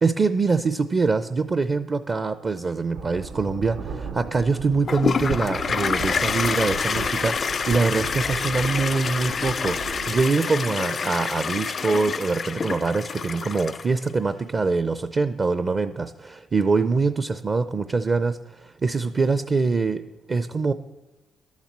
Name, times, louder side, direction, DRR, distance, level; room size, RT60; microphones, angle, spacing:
voice 1, 0.0-20.7, right 4 dB, 35° right, 11 dB, 0.5 m, -24 dB
sound 1, 2.9-10.2, right 5 dB, 80° right, 1.0 m, -36 dB
Toilet flush, 4.9-14.1, left 5 dB, 45° left, 0.3 m, -27 dB
11.5 x 7.4 x 7.3 m, 1.1 s
cardioid pair, 90°, 0 cm